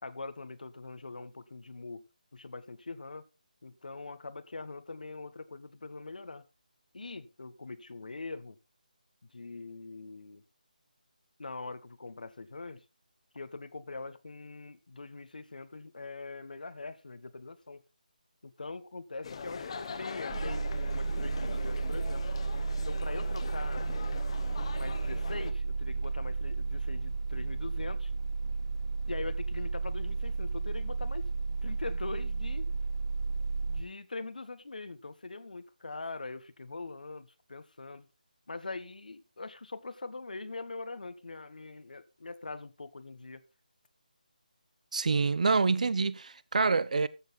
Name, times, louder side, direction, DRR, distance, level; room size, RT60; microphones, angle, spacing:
voice 1, 0.0-2.1 2.3-3.3 3.6-6.4 6.9-8.6 9.3-10.4 11.4-12.8 13.3-17.8 18.4-22.3 22.8-23.8 24.8-28.1 29.1-32.7 33.7-38.1 38.5-43.4, left 3 dB, 70° left, 1.2 m, -42 dB
sound 1, 19.2-25.5, left 5 dB, 40° left, 1.3 m, -41 dB
sound 2, 20.3-33.8, right 4 dB, 30° right, 2.4 m, -33 dB
voice 2, 44.9-47.1, right 4 dB, 55° right, 0.9 m, -26 dB
14.0 x 7.6 x 4.2 m
figure-of-eight pair, 160°, 5 cm